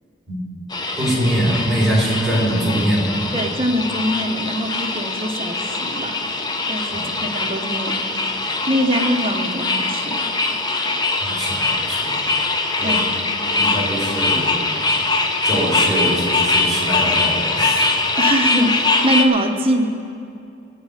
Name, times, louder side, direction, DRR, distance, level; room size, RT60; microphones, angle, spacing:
sound 1, 0.7-19.2, left 3 dB, 25° left, 0.7 m, -22 dB
voice 1, 1.0-3.3 6.9-7.0 11.2-12.1 12.8-13.0 13.5-14.6 15.4-17.9, right 1 dB, ahead, -7 dB, 3.9 m, -22 dB
voice 2, 3.3-6.3 6.7-8.0 8.7-10.2 12.8-13.1 18.2-19.9, equal, 30° right, 4 dB, 0.9 m, -23 dB
19.0 x 8.3 x 4.9 m, 2.6 s
head